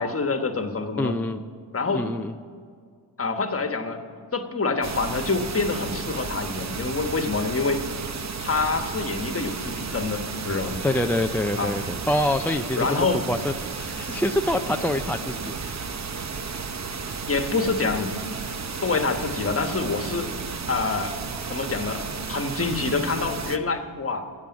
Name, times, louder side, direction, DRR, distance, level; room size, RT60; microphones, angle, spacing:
voice 1, 0.0-1.1 1.7-2.0 3.2-4.0 4.3-7.8 8.4-10.8 11.6-11.7 12.8-13.2 17.3-18.1 18.8-20.3 20.7-21.2 21.5-24.3, left 4 dB, 30° left, 6 dB, 1.3 m, -26 dB
voice 2, 1.0-1.4 1.9-2.3 10.8-13.0 13.3-15.5, left 1 dB, 5° left, 5 dB, 0.3 m, -25 dB
sound 1, 4.8-23.6, right 5 dB, 35° right, 0.8 m, -33 dB
14.0 x 8.6 x 9.6 m, 2.1 s
wide cardioid pair, 115°, 47 cm